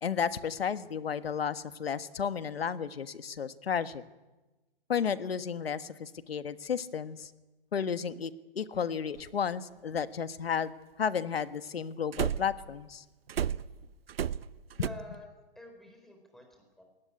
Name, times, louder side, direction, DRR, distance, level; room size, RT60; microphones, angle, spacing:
voice 1, 0.0-4.0 4.9-7.3 7.7-10.7 11.0-13.0, left 7 dB, 90° left, 12 dB, 1.5 m, -33 dB
sound 1, 9.2-9.3 12.1-12.7 13.3-14.9, right 9 dB, 80° right, 0.8 m, -32 dB
voice 2, 14.7-15.3 15.6-16.8, left 1 dB, ahead, 3 dB, 4.2 m, -48 dB
21.0 x 18.5 x 9.8 m, 1.1 s
hypercardioid pair, 150°, 29 cm